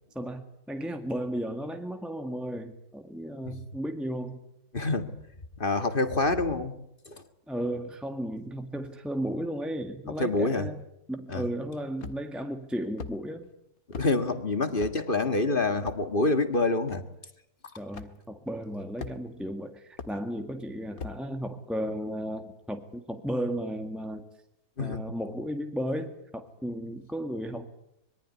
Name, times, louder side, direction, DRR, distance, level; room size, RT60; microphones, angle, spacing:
voice 1, 0.1-4.4 7.5-13.5 17.8-24.3 24.8-27.7, equal, ahead, 6 dB, 1.7 m, -34 dB
voice 2, 4.7-5.1 5.6-6.8 7.1-7.2 10.2-10.7 11.3-11.4 14.0-17.0 24.8-25.0, left 3 dB, 35° left, 9 dB, 2.0 m, -26 dB
sound 1, 12.0-12.4 13.0-13.2 13.9-14.1 14.8-15.0 15.8-16.0 16.9-17.0 17.9-18.1 19.0-19.4 20.0-20.1 21.0-21.2, left 5 dB, 65° left, 2.2 m, -39 dB
25.5 x 22.5 x 9.7 m, 0.79 s
omnidirectional pair, 1.6 m